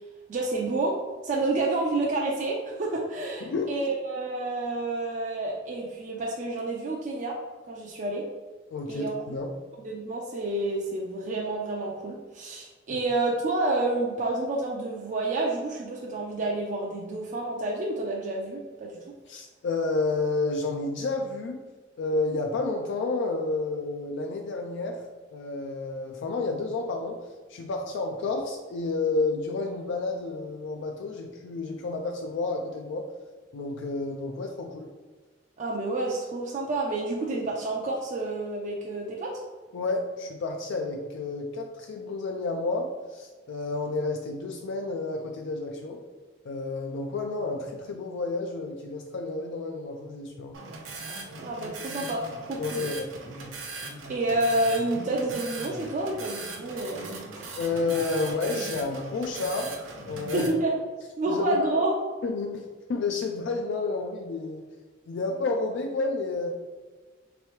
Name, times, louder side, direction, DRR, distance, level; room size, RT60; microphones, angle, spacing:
voice 1, 0.3-7.4 7.7-8.3 8.9-9.1 9.8-19.0 35.6-39.4 51.4-52.8 54.1-57.3 60.3-60.7 61.2-62.0, right 2 dB, 40° right, -2 dB, 0.4 m, -29 dB
voice 2, 8.7-9.5 12.9-13.0 19.3-21.6 22.0-25.0 25.3-33.1 33.5-34.9 39.7-46.0 46.4-50.6 52.6-53.1 57.5-59.7 60.1-60.5 61.3-61.6 62.2-64.7 65.1-66.5, left 3 dB, 65° left, 3 dB, 0.3 m, -30 dB
sound 1, 50.5-60.5, right 3 dB, 85° right, 0.6 m, -39 dB
3.2 x 3.0 x 3.0 m, 1.3 s
head